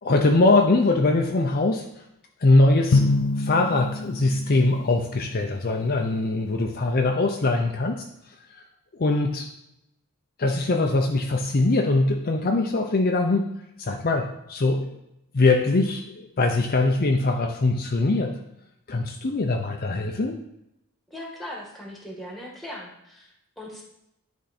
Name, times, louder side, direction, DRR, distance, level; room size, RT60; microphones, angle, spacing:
voice 1, 0.0-1.9 2.4-3.0 3.4-8.0 9.0-9.5 10.4-13.4 13.8-14.9 15.3-18.4 18.9-20.4, left 2 dB, 45° left, 2 dB, 0.6 m, -22 dB
Drum, 2.9-5.1, left 3 dB, 85° left, 0.5 m, -25 dB
voice 2, 21.1-23.8, left 1 dB, ahead, -2 dB, 1.6 m, -39 dB
10.5 x 3.6 x 4.2 m, 0.82 s
head